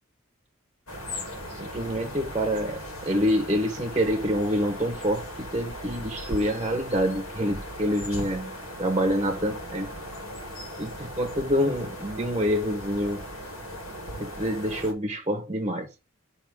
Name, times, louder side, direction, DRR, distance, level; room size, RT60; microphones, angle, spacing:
sound 1, 0.9-14.9, equal, 80° left, 2.6 m, -38 dB
voice 1, 1.5-9.9 10.8-13.2 14.2-15.9, equal, 20° right, 1.0 m, -27 dB
5.9 x 3.6 x 6.0 m
head